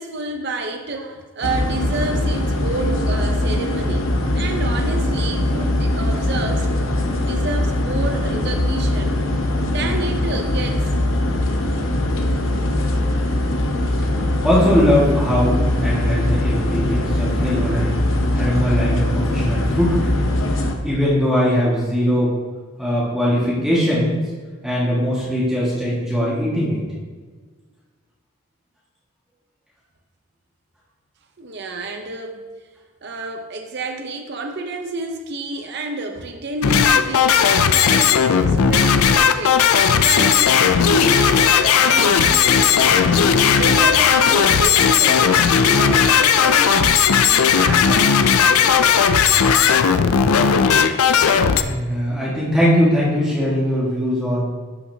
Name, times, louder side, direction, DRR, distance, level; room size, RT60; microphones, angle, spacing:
voice 1, 0.0-6.8 7.2-9.4 9.6-11.3 12.5-12.8 31.4-32.4 33.0-39.7 39.9-45.4 45.7-47.0 47.6-49.3, right 2 dB, 50° right, 4 dB, 0.6 m, -30 dB
sound 1, 1.4-20.7, left 1 dB, 65° left, 0.8 m, -21 dB
voice 2, 14.4-20.3 20.8-22.3 22.8-24.2 24.6-26.8 47.1-47.5 51.5-54.5, equal, 5° right, -8 dB, 1.6 m, -20 dB
sound 2, 36.6-51.6, left 7 dB, 90° left, 0.4 m, -15 dB
12.0 x 5.6 x 2.8 m, 1.5 s
head